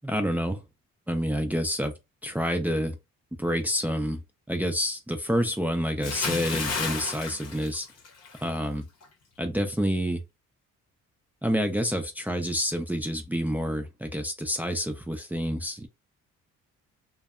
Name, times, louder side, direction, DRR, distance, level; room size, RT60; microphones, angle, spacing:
voice 1, 0.0-0.6 1.1-1.9 2.2-3.0 3.4-4.2 4.5-7.9 8.4-8.8 9.4-10.2 11.4-15.9, equal, 5° right, 0.4 m, -28 dB
Bathtub (filling or washing) / Splash splatter, 6.0-8.5 8.8-9.1, left 5 dB, 55° left, 0.8 m, -32 dB
2.6 x 2.1 x 2.4 m
cardioid pair, 90°, 30 cm